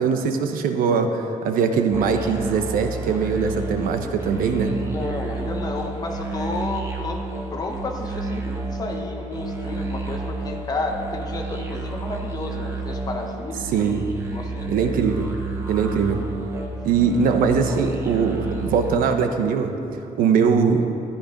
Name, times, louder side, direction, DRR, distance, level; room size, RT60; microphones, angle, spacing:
voice 1, 0.0-4.8 13.7-14.1 14.7-15.4 15.7-16.4 16.8-19.8 20.2-20.9, right 5 dB, 80° right, 6 dB, 1.1 m, -21 dB
sound 1, 1.9-19.0, right 3 dB, 20° right, 1.4 m, -30 dB
voice 2, 4.7-7.2 7.5-14.9, left 3 dB, 25° left, 2 dB, 1.3 m, -32 dB
13.0 x 11.5 x 5.3 m, 2.8 s
cardioid pair, 170°, 14 cm